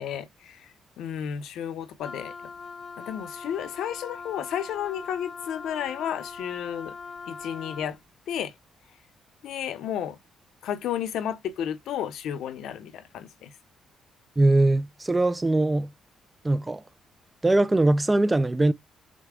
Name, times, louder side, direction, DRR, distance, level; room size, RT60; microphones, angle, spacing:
voice 1, 0.0-2.3 3.0-6.9 7.3-8.0 8.3-8.5 9.4-10.2 10.6-13.5, left 9 dB, 80° left, 0.8 m, -32 dB
Wind instrument woodwind instrument, 2.0-8.0, left 5 dB, 45° left, 0.5 m, -41 dB
voice 2, 14.4-15.9 16.4-16.8 17.4-18.7, right 2 dB, 15° right, 0.4 m, -21 dB
6.2 x 2.2 x 3.6 m
cardioid pair, 90°, 0 cm